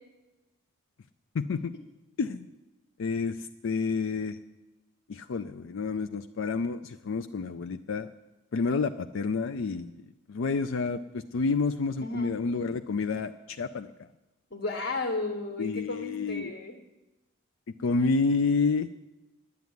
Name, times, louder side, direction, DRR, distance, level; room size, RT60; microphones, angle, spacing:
voice 1, 1.3-1.7 2.2-2.5 3.0-4.4 5.1-8.1 8.5-10.0 10.3-14.1 15.6-16.5 17.8-18.9, left 4 dB, 70° left, 9 dB, 0.4 m, -29 dB
voice 2, 12.0-12.3 14.5-16.7, left 3 dB, 55° left, 3 dB, 1.2 m, -33 dB
10.5 x 8.2 x 9.5 m, 1.0 s
head